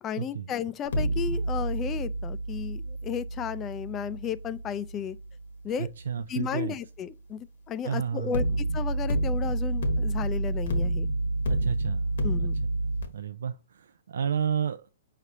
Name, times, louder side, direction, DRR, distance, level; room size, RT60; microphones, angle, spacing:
voice 1, 0.0-5.2 5.6-5.9 6.3-8.4 8.7-11.1 12.2-12.5, left 8 dB, 25° left, 0.4 m, -33 dB
sound 1, 0.9-5.9 8.3-13.0, right 2 dB, 65° left, 1.2 m, -29 dB
voice 2, 5.8-6.8 7.8-8.4 11.5-12.0 12.4-12.5 13.1-14.8, right 7 dB, 75° right, 0.3 m, -31 dB
4.8 x 3.3 x 2.7 m
hypercardioid pair, 135°, 0 cm